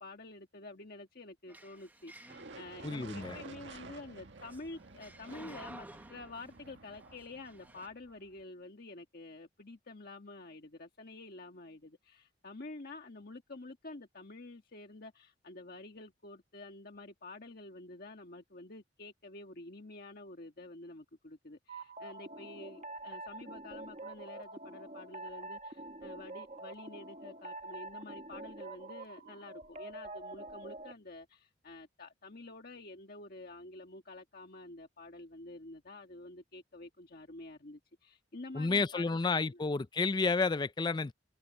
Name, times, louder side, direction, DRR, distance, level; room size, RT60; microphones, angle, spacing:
voice 1, 0.0-39.6, left 2 dB, 55° left, 1.5 m, -49 dB
sound 1, 1.5-7.9, right 1 dB, 10° right, 1.2 m, -54 dB
sound 2, 2.3-8.4, right 3 dB, 80° right, 1.6 m, -52 dB
voice 2, 2.8-3.4 38.5-41.1, left 4 dB, 25° left, 0.4 m, -31 dB
sound 3, 21.7-30.9, right 2 dB, 40° right, 1.4 m, -46 dB
head